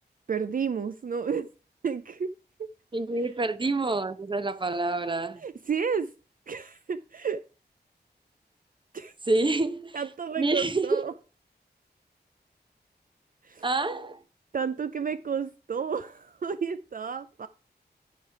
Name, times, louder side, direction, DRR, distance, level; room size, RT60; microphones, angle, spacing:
voice 1, 0.3-1.5 1.8-2.3 5.4-6.1 6.5-7.4 8.9-9.1 9.9-11.1 13.4-13.6 14.5-17.5, right 6 dB, 50° right, 0.4 m, -31 dB
voice 2, 2.9-5.4 9.3-10.0 10.4-11.1 13.6-14.2, right 2 dB, 30° right, 0.8 m, -27 dB
10.5 x 5.0 x 4.6 m
wide cardioid pair, 100°, 18 cm